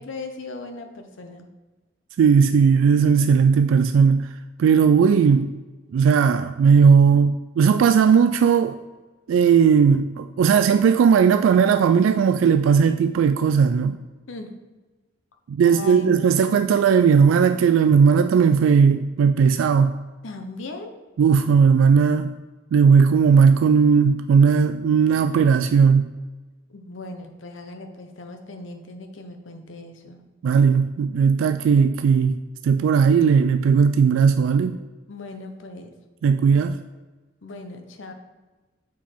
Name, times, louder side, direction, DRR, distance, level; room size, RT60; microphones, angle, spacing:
voice 1, 0.0-1.5 14.3-14.5 15.6-16.2 20.2-20.9 26.7-30.2 35.1-35.9 37.4-38.1, left 2 dB, 70° left, 5 dB, 0.8 m, -38 dB
voice 2, 2.2-4.3 4.6-5.5 5.9-8.8 9.3-14.0 15.5-19.9 21.2-22.3 22.7-26.1 30.4-32.4 32.6-34.8 36.2-36.8, right 6 dB, 75° right, 10 dB, 0.3 m, -17 dB
7.2 x 4.6 x 4.5 m, 1.2 s
head